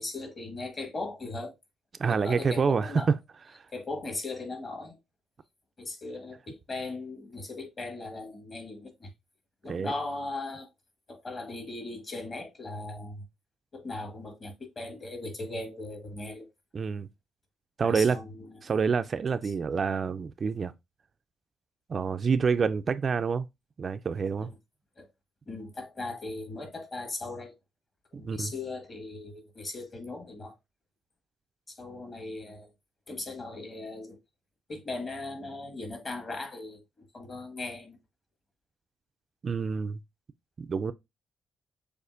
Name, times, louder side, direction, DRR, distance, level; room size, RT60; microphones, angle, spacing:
voice 1, 0.0-1.5 2.1-3.1 3.7-5.0 5.8-9.1 9.6-10.7 11.1-13.3 13.7-16.5 17.8-18.6 19.4-19.5 24.4-24.5 25.0-25.1 25.4-27.5 28.1-30.5 31.7-32.7 33.1-34.2 34.7-38.0, left 2 dB, 35° left, 1.6 m, -38 dB
voice 2, 2.0-3.2 3.5-3.6 9.7-9.9 16.7-17.1 17.8-18.2 18.6-20.7 21.9-23.5 23.8-24.5 28.1-28.5 39.4-40.0 40.6-40.9, right 5 dB, 45° right, 0.3 m, -27 dB
6.6 x 2.5 x 2.5 m
cardioid pair, 90°, 0 cm